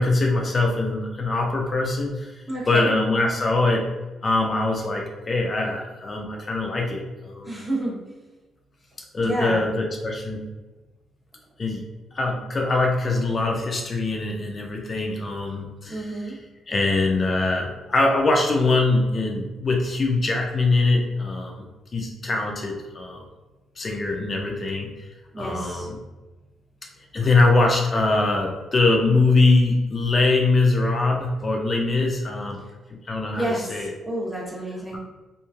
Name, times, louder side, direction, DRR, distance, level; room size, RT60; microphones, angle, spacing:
voice 1, 0.0-2.4 2.7-3.9 4.2-7.5 9.1-10.4 11.6-11.8 12.1-16.3 16.7-21.6 21.9-23.2 23.8-25.1 25.4-26.0 27.1-32.6 32.9-33.9, left 2 dB, 35° left, 0 dB, 0.4 m, -22 dB
voice 2, 2.5-2.9 7.4-8.0 9.2-9.7 15.9-16.4 25.3-25.9 33.3-35.0, right 1 dB, 20° right, -4 dB, 0.8 m, -29 dB
3.0 x 2.5 x 2.3 m, 1.2 s
cardioid pair, 90°, 0 cm